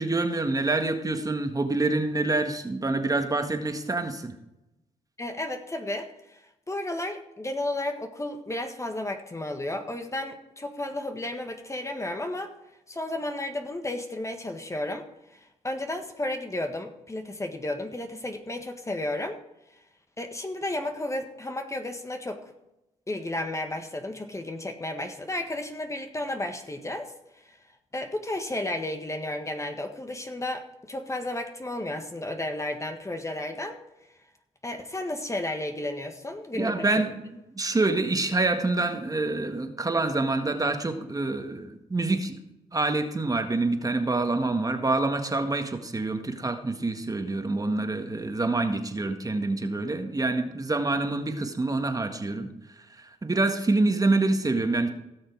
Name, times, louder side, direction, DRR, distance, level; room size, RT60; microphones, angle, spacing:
voice 1, 0.0-4.3 36.6-42.4 42.7-54.9, right 2 dB, 25° right, 6 dB, 1.8 m, -26 dB
voice 2, 5.2-12.5 12.9-15.0 15.3-19.4 20.2-22.5 23.1-27.6 27.9-33.8 34.6-36.9, left 1 dB, 20° left, 6 dB, 1.5 m, -33 dB
17.0 x 6.5 x 4.8 m, 0.92 s
supercardioid pair, 55°, 14 cm